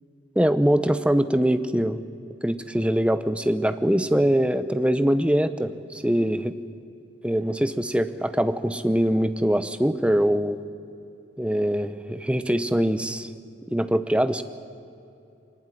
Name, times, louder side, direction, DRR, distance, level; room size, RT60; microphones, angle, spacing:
voice 1, 0.4-2.0 2.4-6.5 7.2-10.6 11.4-13.3 13.7-14.4, equal, 5° right, 12 dB, 0.7 m, -23 dB
23.0 x 19.0 x 10.0 m, 2.7 s
head